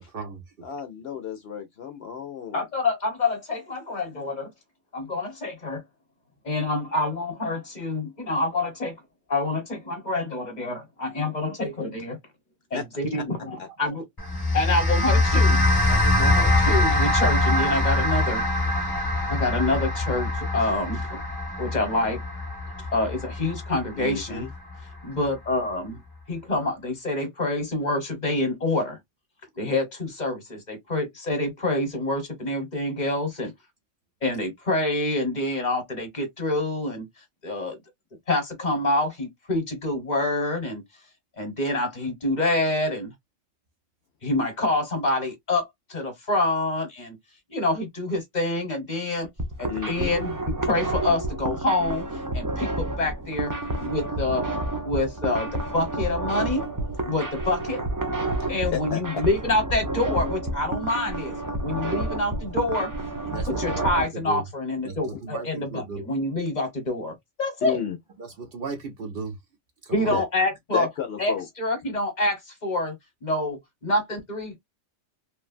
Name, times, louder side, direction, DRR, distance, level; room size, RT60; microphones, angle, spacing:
voice 1, 0.0-0.4 63.3-64.4 64.8-66.0 68.2-69.4 69.8-70.4, right 4 dB, 55° right, 0.8 m, -36 dB
voice 2, 0.6-2.7 12.7-12.8 13.1-13.2 13.6-13.7 23.9-24.5 49.7-50.1 58.4-59.2 67.6-68.0 70.0-70.3 70.7-71.5, left 8 dB, 65° left, 0.7 m, -32 dB
voice 3, 2.5-4.5 4.9-5.8 6.4-8.9 9.3-12.2 12.7-14.0 14.5-18.4 19.3-21.2 21.6-22.2 22.9-24.4 25.0-26.0 26.3-29.0 29.6-33.5 34.2-37.1 37.4-37.8 38.3-40.8 41.4-43.1 44.2-47.2 47.5-49.3 49.6-52.0 52.3-53.5 53.8-54.5 54.8-56.6 57.0-57.8 58.5-61.3 61.6-62.9 63.5-67.8 69.9-70.9 71.2-72.9 73.2-74.6, left 2 dB, 40° left, 1.2 m, -27 dB
sound 1, 14.2-24.7, left 2 dB, 20° left, 0.9 m, -23 dB
sound 2, 49.2-64.0, right 1 dB, 35° right, 0.3 m, -30 dB
3.1 x 2.1 x 2.4 m
omnidirectional pair, 1.3 m